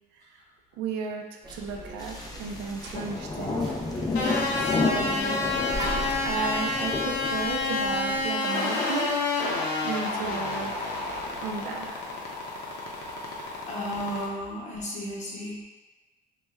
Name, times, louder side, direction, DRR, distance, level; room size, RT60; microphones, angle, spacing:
voice 1, 0.8-3.7 4.1-4.2 4.5-5.6 6.1-9.1 9.5-10.7 11.4-12.0, right 5 dB, 90° right, 2 dB, 0.4 m, -34 dB
sound 1, 1.4-8.3, equal, 25° right, 0.6 m, -40 dB
sound 2, 2.0-8.3, left 3 dB, 20° left, 0.4 m, -32 dB
sound 3, 4.2-14.3, left 3 dB, 85° left, 0.6 m, -29 dB
voice 2, 13.7-15.6, equal, 45° left, -5 dB, 0.9 m, -33 dB
3.0 x 2.2 x 2.2 m, 1.3 s
cardioid pair, 110°, 17 cm